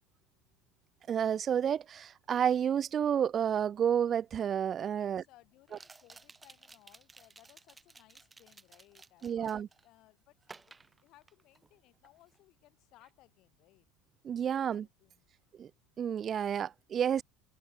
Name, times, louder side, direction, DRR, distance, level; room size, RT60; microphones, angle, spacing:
voice 1, 1.1-5.2 9.2-9.7 14.2-14.9 15.6-15.7 16.0-17.2, right 8 dB, 30° right, 0.3 m, -30 dB
sound 1, 4.0-4.1 5.7-9.9 10.4-11.8 12.0-12.4, right 4 dB, 15° right, 6.6 m, -56 dB
voice 2, 4.9-10.6 11.0-13.9 14.4-15.2, left 17 dB, 55° left, 7.6 m, -63 dB
supercardioid pair, 130°, 0 cm